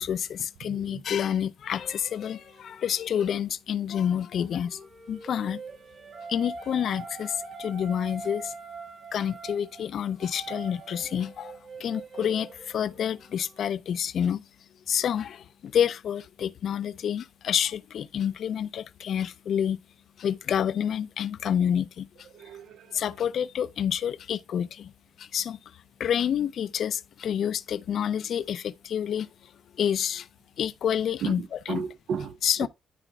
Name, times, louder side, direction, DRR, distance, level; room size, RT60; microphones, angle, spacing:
voice 1, 0.0-4.8 5.1-5.6 6.3-8.5 9.1-14.5 14.9-19.8 20.2-22.3 22.9-24.9 25.2-25.6 26.0-30.3 30.6-31.9 32.4-32.7, left 9 dB, 65° left, 0.4 m, -28 dB
voice 2, 0.6-1.0 22.3-23.1 31.2-32.7, right 7 dB, 75° right, 0.6 m, -35 dB
sound 1, 1.8-3.3 4.5-13.6, right 4 dB, 50° right, 1.3 m, -43 dB
12.5 x 5.0 x 2.3 m
cardioid pair, 120°, 0 cm